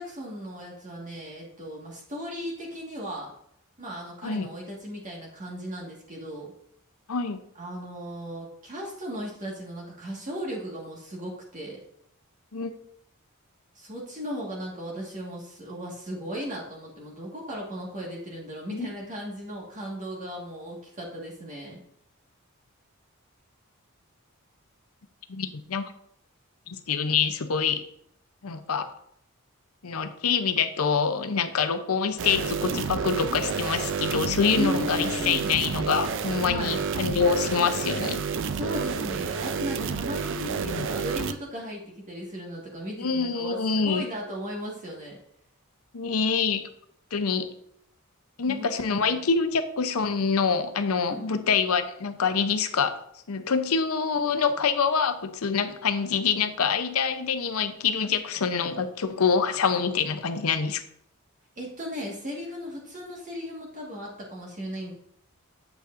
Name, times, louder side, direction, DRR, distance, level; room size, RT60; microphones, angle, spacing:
voice 1, 0.0-3.3 3.8-6.5 7.6-11.8 13.8-21.8 34.6-35.5 36.5-36.8 38.5-45.2 48.5-49.2 51.0-51.3 61.6-64.9, equal, 35° right, -2 dB, 1.6 m, -36 dB
voice 2, 7.1-7.4 12.5-12.7 18.7-18.9 25.3-25.8 26.7-27.8 28.4-28.9 29.8-38.2 40.6-40.9 43.0-44.1 45.9-46.7 47.1-47.5 48.4-52.9 53.3-60.8, left 5 dB, 80° left, 9 dB, 0.7 m, -26 dB
sound 1, 32.2-41.3, right 5 dB, 60° right, 0.4 m, -30 dB
8.1 x 8.1 x 2.6 m, 0.71 s
head